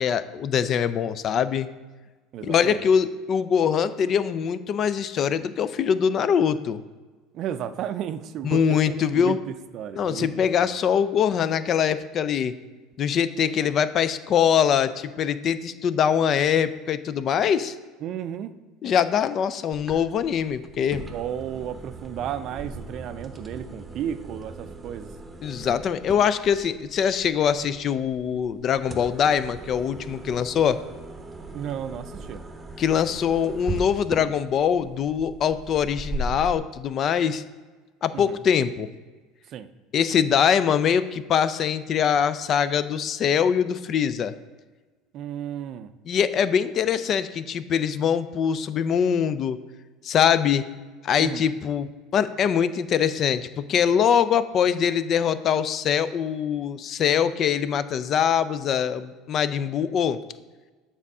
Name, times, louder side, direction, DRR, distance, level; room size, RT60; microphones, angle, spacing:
voice 1, 0.0-1.7 2.4-6.8 8.4-9.4 9.9-12.5 13.0-17.8 18.8-21.1 25.4-30.8 32.8-37.4 38.0-38.9 39.9-44.3 46.1-49.6 50.0-50.6 51.0-60.2, left 8 dB, 45° left, 14 dB, 0.4 m, -23 dB
voice 2, 2.3-2.9 7.3-10.3 10.6-10.7 18.0-18.5 21.1-25.1 31.5-32.4 38.1-38.4 39.5-39.7 45.1-45.9 51.2-51.5, right 9 dB, 55° right, 12 dB, 0.4 m, -33 dB
sound 1, 19.7-36.6, right 2 dB, 15° right, 0.8 m, -38 dB
7.3 x 3.6 x 5.4 m, 1.3 s
hypercardioid pair, 85°, 0 cm